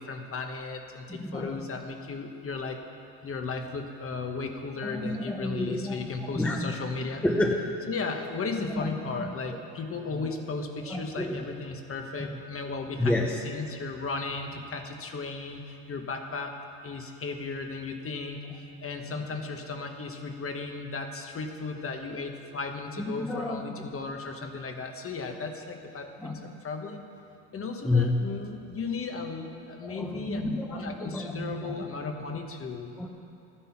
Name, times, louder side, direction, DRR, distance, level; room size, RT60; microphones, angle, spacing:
voice 1, 0.0-2.8 3.2-7.2 7.9-13.2 13.4-16.6 16.8-27.1 27.5-32.9, left 4 dB, 30° left, 4 dB, 1.2 m, -35 dB
voice 2, 1.1-1.7 4.8-6.8 7.2-7.8 8.6-9.6 10.1-10.3 10.8-11.5 12.2-12.4 13.0-13.4 19.2-19.3 23.0-23.8 26.2-26.4 27.8-28.2 29.8-31.8 33.0-33.1, left 2 dB, 5° left, 1 dB, 0.9 m, -30 dB
13.5 x 10.0 x 5.9 m, 2.6 s
cardioid pair, 115°, 42 cm